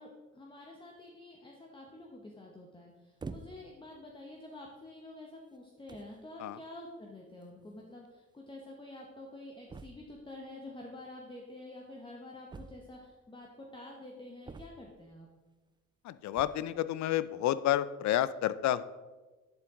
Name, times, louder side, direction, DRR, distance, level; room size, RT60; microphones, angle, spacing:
voice 1, 0.0-15.3, left 1 dB, 15° left, -1 dB, 1.0 m, -48 dB
sound 1, 3.2-3.8 4.6-4.7 5.5-5.6 5.9-6.2 7.4-7.5 7.7-7.8 8.0-8.1 9.7-10.2 12.5-13.2 14.4-15.1 16.3-16.7, right 4 dB, 15° right, 0.3 m, -47 dB
voice 2, 16.0-18.8, left 12 dB, 70° left, 16 dB, 0.5 m, -30 dB
10.5 x 4.5 x 3.7 m, 1.2 s
cardioid pair, 90°, 30 cm